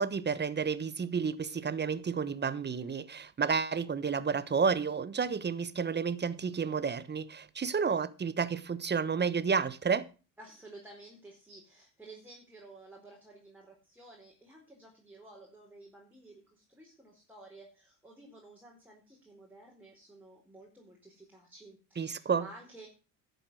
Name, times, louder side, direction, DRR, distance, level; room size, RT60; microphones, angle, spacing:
voice 1, 0.0-10.1 22.0-22.5, right 5 dB, 25° right, 1.1 m, -31 dB
voice 2, 10.4-22.9, right 2 dB, 5° right, 4.5 m, -53 dB
11.5 x 8.2 x 6.3 m
supercardioid pair, 85°, 43 cm